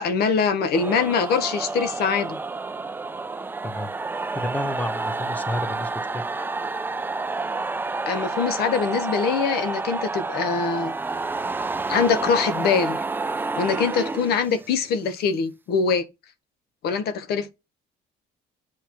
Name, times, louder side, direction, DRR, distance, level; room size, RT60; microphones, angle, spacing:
voice 1, 0.0-2.4 8.1-10.9 11.9-13.0 13.6-16.0 16.8-17.5, left 6 dB, 70° left, 1.2 m, -23 dB
sound 1, 0.7-14.9, right 3 dB, 10° right, 0.4 m, -29 dB
voice 2, 4.3-6.2, left 1 dB, 10° left, 1.0 m, -31 dB
8.4 x 4.4 x 3.1 m
cardioid pair, 110°, 17 cm